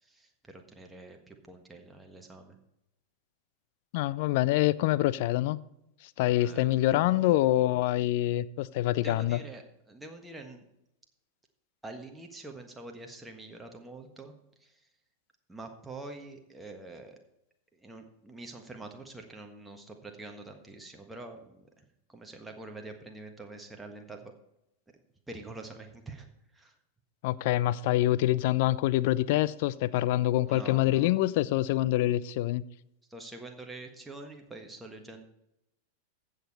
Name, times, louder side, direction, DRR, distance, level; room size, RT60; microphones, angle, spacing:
voice 1, 0.0-2.6 6.4-6.7 6.9-7.4 8.9-10.6 11.8-14.3 14.6-14.9 15.5-17.2 17.7-24.3 25.3-26.3 26.5-26.8 30.5-31.1 33.1-35.2, right 2 dB, 5° right, 1.5 m, -46 dB
voice 2, 3.9-5.6 6.0-9.4 27.2-32.6, left 15 dB, 50° left, 0.4 m, -26 dB
15.5 x 6.7 x 4.1 m
figure-of-eight pair, 90°, 0 cm